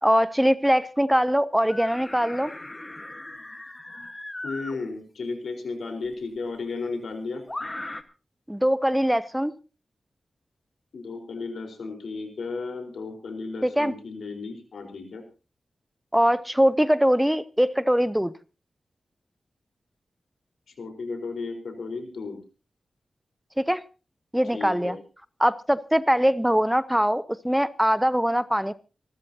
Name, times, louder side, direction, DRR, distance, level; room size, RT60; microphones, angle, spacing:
voice 1, 0.0-2.5 8.5-9.5 13.6-13.9 16.1-18.3 23.6-23.8 24.3-25.0 25.4-28.7, equal, 5° right, 16 dB, 0.6 m, -22 dB
sound 1, 1.7-4.8 6.1-6.2 7.5-8.0, left 2 dB, 20° left, 1.5 m, -38 dB
voice 2, 4.4-7.4 10.9-15.2 20.8-22.4 24.5-25.0, left 4 dB, 85° left, 5 dB, 4.4 m, -34 dB
27.0 x 13.0 x 2.9 m, 0.33 s
wide cardioid pair, 80°, 0 cm